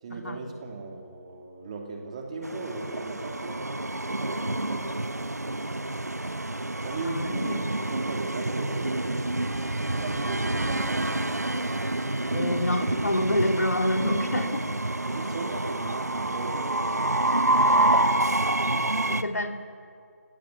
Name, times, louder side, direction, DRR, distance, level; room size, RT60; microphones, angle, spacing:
voice 1, 0.0-3.7 4.2-5.0 6.8-9.1 9.9-11.3 15.0-17.9, right 3 dB, 25° right, 2 dB, 2.8 m, -38 dB
Train, 2.4-19.2, right 1 dB, 85° right, 1.2 m, -27 dB
voice 2, 7.0-7.7 12.3-14.6 15.1-15.3 19.1-19.6, left 1 dB, 75° left, 5 dB, 2.9 m, -28 dB
28.0 x 17.0 x 7.3 m, 2.4 s
figure-of-eight pair, 160°, 8 cm